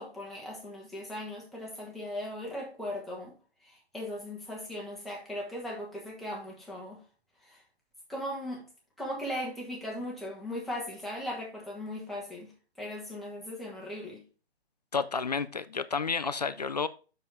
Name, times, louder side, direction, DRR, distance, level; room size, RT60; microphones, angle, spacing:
voice 1, 0.0-3.3 3.6-7.0 7.4-7.6 8.1-8.6 9.0-12.5 12.8-14.2, left 1 dB, ahead, 1.2 m, -38 dB
voice 2, 14.9-16.9, left 5 dB, 40° left, 0.4 m, -31 dB
7.4 x 6.3 x 3.3 m
figure-of-eight pair, 135°, 32 cm